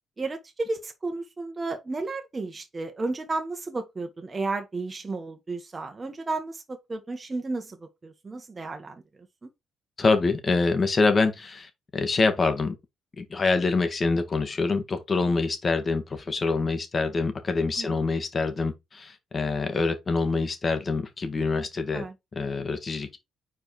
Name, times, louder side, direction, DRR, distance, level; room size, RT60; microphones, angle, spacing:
voice 1, 0.2-9.0 9.4-9.5 17.8-18.0 21.9-22.1, right 3 dB, 30° right, 1.5 m, -33 dB
voice 2, 10.0-12.8 13.2-22.0 22.3-23.2, left 3 dB, 35° left, 1.8 m, -25 dB
4.9 x 4.6 x 4.5 m
cardioid pair, 90°, 0 cm